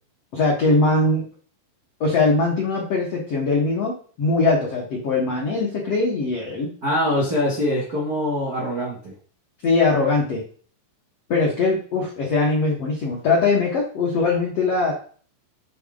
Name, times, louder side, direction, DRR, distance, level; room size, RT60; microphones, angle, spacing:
voice 1, 0.3-1.2 2.0-6.7 9.6-10.4 11.3-14.9, left 3 dB, 70° left, -3 dB, 1.5 m, -21 dB
voice 2, 6.8-9.1, left 1 dB, 50° right, -5 dB, 1.1 m, -23 dB
8.1 x 4.3 x 3.8 m, 0.43 s
omnidirectional pair, 5.3 m